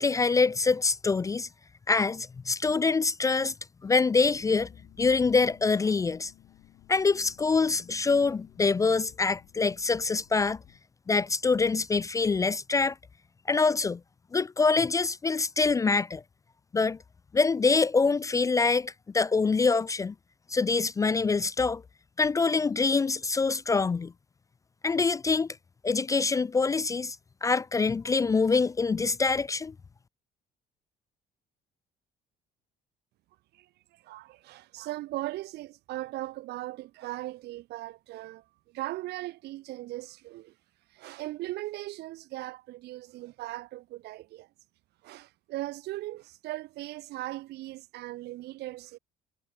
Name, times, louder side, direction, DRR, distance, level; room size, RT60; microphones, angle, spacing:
voice 1, 0.0-1.5 1.9-3.5 3.8-4.7 5.0-6.3 6.9-10.6 11.1-13.0 13.5-14.0 14.3-16.2 16.7-17.0 17.3-20.1 20.5-21.8 22.2-24.1 24.8-25.5 25.8-27.2 27.4-29.7, left 4 dB, 20° left, 0.3 m, -25 dB
sound 1, 4.1-10.8, left 16 dB, 75° left, 4.0 m, -57 dB
voice 2, 33.5-38.4 38.7-40.5 40.9-44.5 45.0-49.0, right 17 dB, 80° right, 1.9 m, -38 dB
cardioid pair, 110°, 17 cm